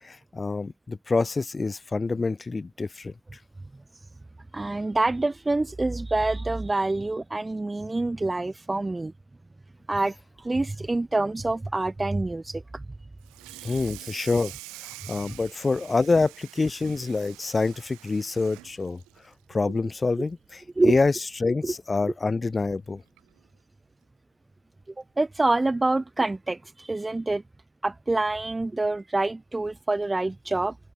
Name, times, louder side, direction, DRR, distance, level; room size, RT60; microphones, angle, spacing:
voice 1, 0.0-3.1 13.6-14.5 15.1-19.0 19.5-21.1 21.4-23.0, left 3 dB, 25° left, 2.9 m, -26 dB
voice 2, 4.5-9.1 9.9-12.8 13.6-13.7 20.8-20.9 21.6-21.7 25.2-27.4 27.8-30.7, right 2 dB, 15° right, 1.4 m, -26 dB
Water tap faucet / Sink (filling or washing), 13.2-19.9 20.3-20.5 20.9-21.0 21.4-21.5 22.6-22.7 23.2-23.4, right 23 dB, 75° right, 7.7 m, -46 dB
open air
hypercardioid pair, 60°, 0 cm